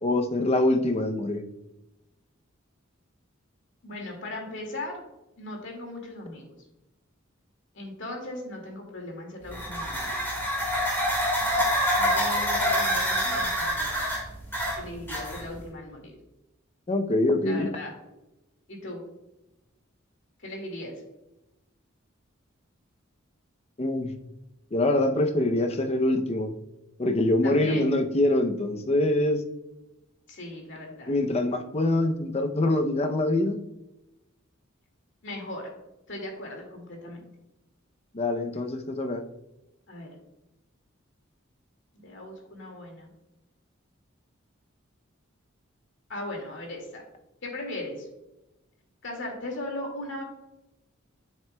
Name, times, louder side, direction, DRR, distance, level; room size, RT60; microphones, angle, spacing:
voice 1, 0.0-1.4 16.9-17.7 23.8-24.1 24.7-26.5 27.0-29.4 31.1-33.6 38.1-39.2, left 1 dB, 30° left, 6 dB, 0.6 m, -24 dB
voice 2, 3.8-5.0 5.4-6.6 7.7-10.2 11.7-13.9 14.8-16.2 17.4-17.9 18.7-19.0 20.4-21.0 27.4-27.9 30.3-31.2 35.2-35.7 36.1-37.3 39.9-40.1 41.9-43.1 46.1-47.0 47.4-48.1 49.0-50.2, left 1 dB, 65° left, 1 dB, 2.2 m, -38 dB
sound 1, 9.5-15.6, equal, 10° left, 2.5 m, -26 dB
9.2 x 7.4 x 2.3 m, 0.93 s
head